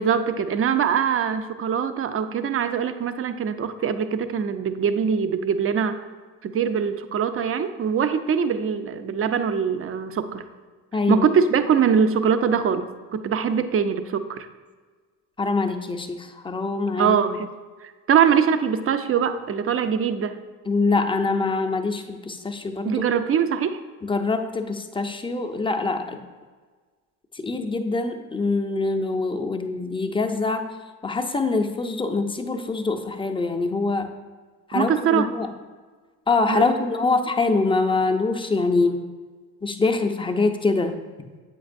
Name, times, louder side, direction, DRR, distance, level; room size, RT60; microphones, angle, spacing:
voice 1, 0.0-6.0 6.4-10.4 11.1-12.9 13.1-14.5 17.0-17.5 17.8-20.4 22.8-23.8 34.7-35.3 36.5-36.6, right 7 dB, 30° right, 10 dB, 0.5 m, -22 dB
voice 2, 10.9-11.3 15.4-17.4 20.7-23.0 24.0-26.2 27.3-30.8 31.0-34.1 34.7-35.5 36.3-39.0 39.6-41.0, left 3 dB, 10° left, 6 dB, 0.5 m, -24 dB
7.9 x 5.3 x 2.5 m, 1.4 s
hypercardioid pair, 65°, 43 cm